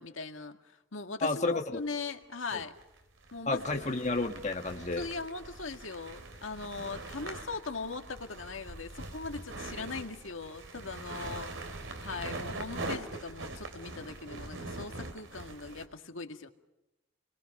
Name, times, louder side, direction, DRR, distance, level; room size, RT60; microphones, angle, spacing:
voice 1, 0.0-2.7 3.3-3.8 5.0-16.5, left 4 dB, 85° left, 6 dB, 1.9 m, -40 dB
voice 2, 1.2-1.8 3.5-5.1, left 3 dB, 35° left, 4 dB, 1.5 m, -31 dB
sound 1, 1.8-1.9 2.7-15.8, right 2 dB, 75° right, 3.1 m, -42 dB
30.0 x 22.0 x 5.5 m, 0.94 s
head